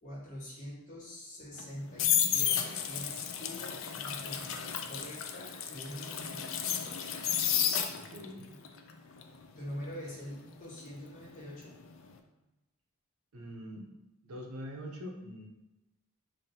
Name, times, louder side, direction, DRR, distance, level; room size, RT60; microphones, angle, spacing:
voice 1, 0.0-7.0 9.5-11.7, left 1 dB, 35° left, -7 dB, 1.3 m, -45 dB
sound 1, 1.6-8.3 8.6-11.5 11.8-12.1, left 8 dB, 65° left, 0.4 m, -32 dB
voice 2, 7.9-8.5 13.3-13.9 14.2-15.5, equal, 85° right, 1 dB, 0.7 m, -43 dB
5.1 x 2.6 x 2.8 m, 0.99 s
head